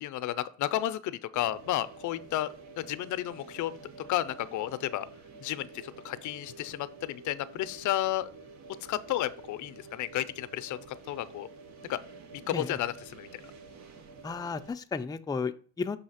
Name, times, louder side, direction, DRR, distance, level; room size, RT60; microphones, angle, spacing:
voice 1, 0.0-2.5 2.8-3.8 4.1-5.1 5.4-8.3 8.9-10.8 11.1-11.5 11.9-12.0 12.3-13.3, left 13 dB, 75° left, 14 dB, 0.5 m, -32 dB
sound 1, 1.3-14.7, right 3 dB, 65° right, 0.9 m, -50 dB
voice 2, 14.2-16.0, left 5 dB, 15° left, 7 dB, 0.4 m, -33 dB
6.4 x 2.8 x 5.5 m, 0.42 s
cardioid pair, 90°, 30 cm